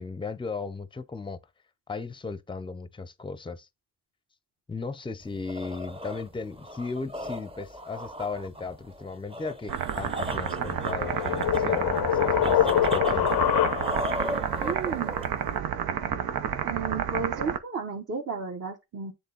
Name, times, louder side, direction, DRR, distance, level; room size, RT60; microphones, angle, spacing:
voice 1, 0.0-1.4 1.9-3.7 4.7-13.3, left 4 dB, 15° left, 0.6 m, -36 dB
sound 1, 5.2-15.6, equal, 15° right, 0.8 m, -36 dB
sound 2, 9.7-17.6, right 8 dB, 80° right, 0.8 m, -30 dB
sound 3, 10.5-14.2, left 11 dB, 80° left, 0.6 m, -25 dB
voice 2, 14.6-15.1 16.6-19.1, right 5 dB, 45° right, 1.2 m, -33 dB
7.5 x 3.4 x 3.9 m
cardioid pair, 65°, 36 cm